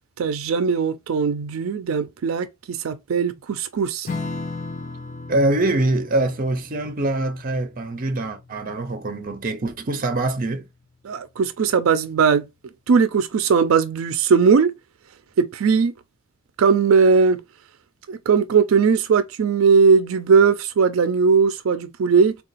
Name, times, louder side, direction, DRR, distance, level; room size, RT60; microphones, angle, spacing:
voice 1, 0.2-4.1 11.0-12.5 12.9-14.7 15.4-15.9 16.6-17.4 18.1-22.4, right 5 dB, 80° right, 0.4 m, -19 dB
Strum, 4.0-10.9, left 3 dB, 35° left, 0.6 m, -37 dB
voice 2, 5.3-10.7, right 2 dB, 45° right, 0.6 m, -24 dB
3.7 x 2.3 x 3.9 m
head